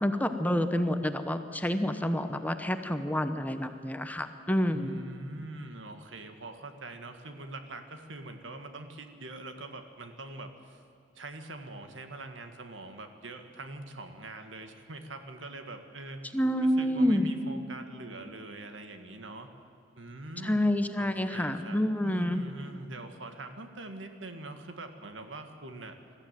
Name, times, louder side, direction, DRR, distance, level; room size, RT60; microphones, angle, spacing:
voice 1, 0.0-5.0 16.3-17.3 20.4-22.4, equal, 10° left, 8 dB, 0.9 m, -28 dB
voice 2, 4.7-10.8 11.2-16.3 16.6-19.5 20.0-20.6 21.0-26.0, right 2 dB, 90° right, 7 dB, 1.8 m, -43 dB
21.5 x 14.0 x 9.2 m, 2.6 s
head